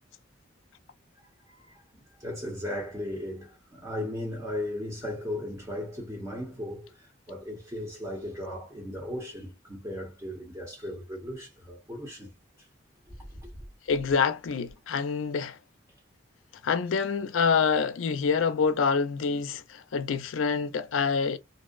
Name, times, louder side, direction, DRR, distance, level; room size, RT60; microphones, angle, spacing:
voice 1, 1.6-12.3, left 1 dB, 15° right, 0.7 m, -36 dB
voice 2, 13.9-15.6 16.6-21.4, left 5 dB, 75° left, 0.4 m, -26 dB
2.6 x 2.0 x 2.3 m
head